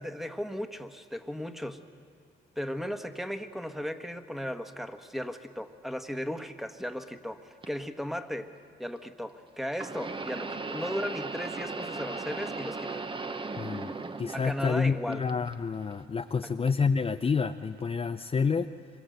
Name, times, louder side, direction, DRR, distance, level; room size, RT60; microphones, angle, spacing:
voice 1, 0.0-1.8 2.6-8.5 8.8-13.0 14.3-15.2, equal, ahead, 7 dB, 1.4 m, -36 dB
sound 1, 7.6-7.7 9.7-14.8 15.1-15.9 16.7-16.8 17.8-17.9, right 3 dB, 25° right, 1.0 m, -37 dB
voice 2, 13.6-18.7, left 5 dB, 30° left, 6 dB, 0.6 m, -29 dB
25.5 x 22.5 x 7.9 m, 2.3 s
cardioid pair, 90°, 20 cm